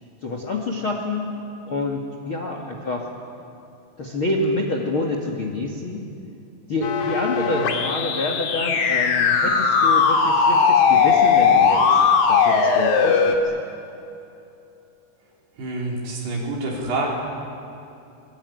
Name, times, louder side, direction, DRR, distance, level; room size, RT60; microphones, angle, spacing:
voice 1, 0.2-1.3 1.7-3.1 4.0-6.0 6.7-12.0 12.3-13.4, left 2 dB, 45° left, 2 dB, 1.8 m, -27 dB
sound 1, 6.8-13.4, left 5 dB, 65° left, 3.7 m, -18 dB
voice 2, 15.6-17.1, right 2 dB, 60° right, -2 dB, 6.1 m, -27 dB
24.0 x 23.0 x 9.4 m, 2.7 s
omnidirectional pair, 5.2 m